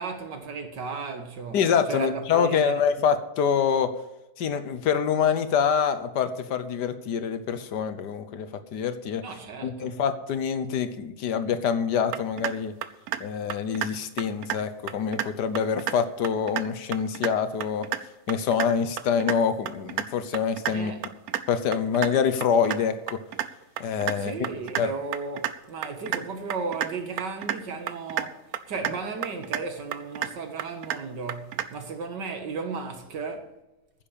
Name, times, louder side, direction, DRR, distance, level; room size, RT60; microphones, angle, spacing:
voice 1, 0.0-1.6 1.9-2.7 9.2-10.0 20.7-21.0 24.2-28.4 28.7-33.6, right 4 dB, 90° right, 2.2 m, -35 dB
voice 2, 1.5-3.9 4.4-9.2 9.6-12.7 13.2-17.9 18.3-20.9 21.5-23.2 23.8-24.3 24.8-24.9, left 7 dB, 75° left, 1.5 m, -25 dB
sound 1, 12.1-12.5 12.8-13.2 13.5-13.9 14.2-14.6 14.9-15.3 15.6-16.0 16.2-16.6 16.9-17.3 17.6-18.0 18.3-18.7 19.0-19.4 19.7-20.1 20.3-20.7 21.0-21.4 21.7-22.1 22.4-22.8 23.1-23.5 23.8-24.2 24.4-24.8 25.1-25.5 25.8-26.2 26.5-26.9 27.2-27.6 27.9-28.3 28.5-28.9 29.2-29.6 29.9-30.3 30.6-31.0 31.3-31.7, right 10 dB, 70° right, 1.1 m, -29 dB
10.0 x 7.4 x 8.6 m
omnidirectional pair, 1.8 m